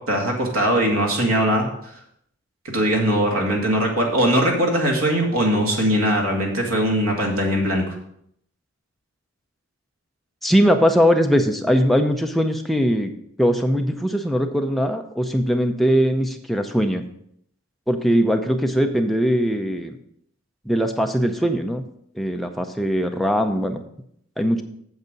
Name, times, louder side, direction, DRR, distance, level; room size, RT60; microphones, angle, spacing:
voice 1, 0.1-1.7 2.6-7.8, equal, 75° right, 0 dB, 2.1 m, -20 dB
voice 2, 10.4-13.1 13.4-17.0 17.9-19.9 20.7-21.8 22.2-23.8 24.4-24.6, equal, ahead, 4 dB, 0.6 m, -20 dB
8.1 x 7.3 x 5.3 m, 0.70 s
head